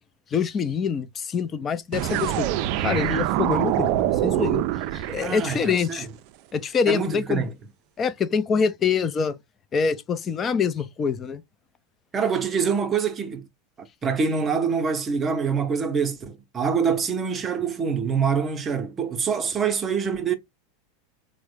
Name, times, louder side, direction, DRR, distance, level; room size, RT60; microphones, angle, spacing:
voice 1, 0.3-2.5 2.8-4.7 4.9-6.1 6.5-7.4 8.0-9.4 9.7-11.4, left 6 dB, 25° left, 0.4 m, -25 dB
sound 1, 1.9-5.9, right 13 dB, 55° right, 0.3 m, -25 dB
voice 2, 5.2-6.1 6.9-7.5 12.1-13.4 14.0-20.3, right 6 dB, 25° right, 0.7 m, -25 dB
3.4 x 2.1 x 3.2 m
supercardioid pair, 125°, 0 cm